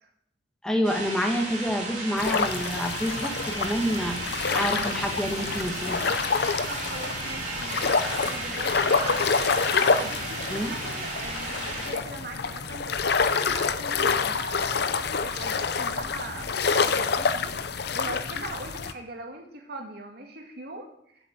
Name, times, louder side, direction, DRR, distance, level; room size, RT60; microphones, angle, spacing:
voice 1, 0.6-6.1 10.5-10.7, equal, 5° left, 2 dB, 1.6 m, -28 dB
sound 1, 0.8-11.9, right 2 dB, 40° right, 3.5 m, -34 dB
sound 2, 2.2-18.9, left 5 dB, 60° left, 0.7 m, -27 dB
voice 2, 6.7-9.5 9.7-14.8 15.2-21.3, right 2 dB, 55° right, 3 dB, 2.0 m, -41 dB
8.3 x 7.4 x 8.3 m, 0.71 s
head